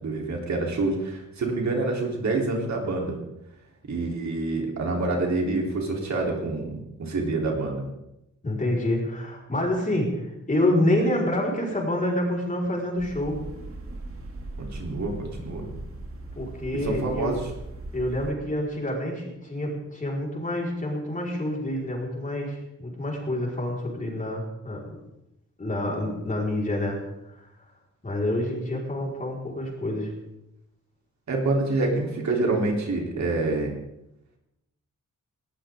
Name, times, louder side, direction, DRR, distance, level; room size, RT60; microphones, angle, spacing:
voice 1, 0.0-3.2 3.9-7.8 14.6-15.7 16.8-17.4 31.3-33.7, right 2 dB, 60° right, 0 dB, 3.9 m, -27 dB
voice 2, 8.4-13.4 16.3-17.3 17.9-25.0 25.6-27.0 28.0-30.1, left 1 dB, 25° left, -2 dB, 5.1 m, -27 dB
sound 1, 13.0-18.3, right 2 dB, 45° right, 3.1 m, -39 dB
20.0 x 18.5 x 3.9 m, 0.87 s
wide cardioid pair, 150°, 31 cm